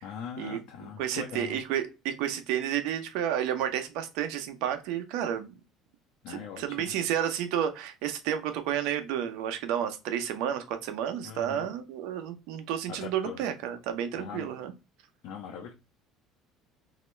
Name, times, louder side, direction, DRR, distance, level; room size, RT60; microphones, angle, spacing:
voice 1, 0.0-1.6 6.2-6.9 11.2-11.7 12.9-13.4 14.2-14.5 15.2-15.7, left 7 dB, 70° left, 0 dB, 0.9 m, -41 dB
voice 2, 1.0-5.5 6.3-14.7, right 10 dB, 80° right, 8 dB, 0.8 m, -31 dB
3.0 x 2.9 x 4.3 m, 0.27 s
cardioid pair, 115°, 0 cm